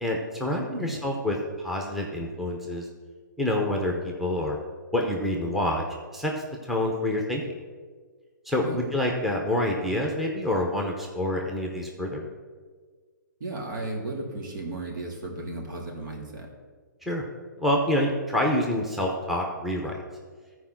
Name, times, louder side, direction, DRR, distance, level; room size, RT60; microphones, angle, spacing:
voice 1, 0.0-2.9 3.4-4.6 4.9-5.8 6.1-6.3 6.6-7.4 8.5-12.3 17.0-17.2 17.6-20.0, left 1 dB, ahead, 0 dB, 0.9 m, -27 dB
voice 2, 13.4-16.5, right 2 dB, 70° right, 0 dB, 2.8 m, -35 dB
13.5 x 4.8 x 5.9 m, 1.5 s
hypercardioid pair, 150°, 11 cm